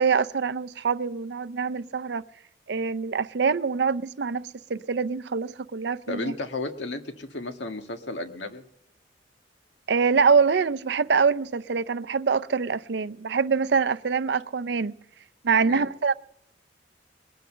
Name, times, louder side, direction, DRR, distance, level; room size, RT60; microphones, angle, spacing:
voice 1, 0.0-2.2 2.7-6.3 9.9-14.9 15.4-16.1, right 5 dB, 70° right, 0.5 m, -24 dB
voice 2, 6.1-8.6 15.6-15.8, left 2 dB, 85° left, 1.7 m, -33 dB
21.5 x 9.3 x 6.6 m
head